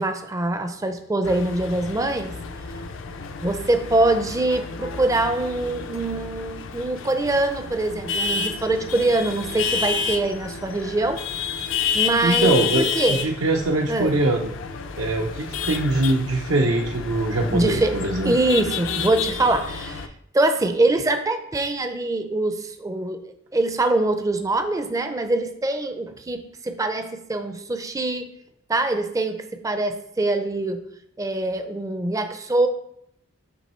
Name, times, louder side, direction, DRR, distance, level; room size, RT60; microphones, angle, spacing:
voice 1, 0.0-2.3 3.4-11.2 11.9-13.2 13.9-14.2 17.5-18.0 18.2-20.1 20.3-28.3 28.7-30.8 31.2-32.7, right 2 dB, 15° right, 8 dB, 0.4 m, -23 dB
sound 1, 1.2-20.1, left 6 dB, 65° left, 0.5 m, -30 dB
voice 2, 12.2-14.5 15.0-18.4, right 2 dB, 75° right, 1 dB, 0.6 m, -22 dB
8.2 x 3.0 x 4.3 m, 0.74 s
head